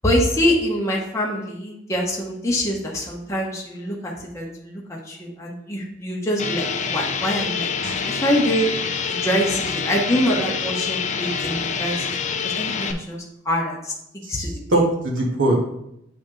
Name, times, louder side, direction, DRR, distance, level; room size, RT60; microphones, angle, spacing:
voice 1, 0.0-7.7 8.0-8.7 9.0-12.1 12.4-13.9 14.3-14.5, equal, 15° left, -3 dB, 1.0 m, -24 dB
sound 1, 6.4-12.9, left 6 dB, 35° left, 0.4 m, -26 dB
voice 2, 14.2-15.6, right 1 dB, 75° right, -1 dB, 1.4 m, -22 dB
8.7 x 3.4 x 3.8 m, 0.80 s
head